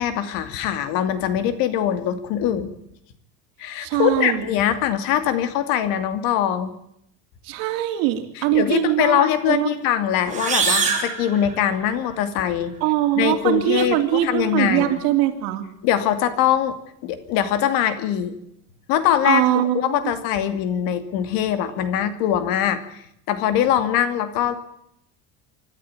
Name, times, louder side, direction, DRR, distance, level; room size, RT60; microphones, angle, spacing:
voice 1, 0.0-2.7 3.6-6.7 8.4-12.7 13.2-15.0 15.8-16.7 17.0-18.4 18.9-22.8 23.3-24.6, left 10 dB, 65° left, 11 dB, 2.6 m, -22 dB
voice 2, 3.8-4.4 7.4-9.7 12.8-15.7 19.2-19.8, right 14 dB, 65° right, 6 dB, 3.2 m, -22 dB
sound 1, 10.3-12.1, right 5 dB, 20° right, 4.3 m, -24 dB
25.5 x 12.5 x 8.8 m, 0.75 s
cardioid pair, 155°, 37 cm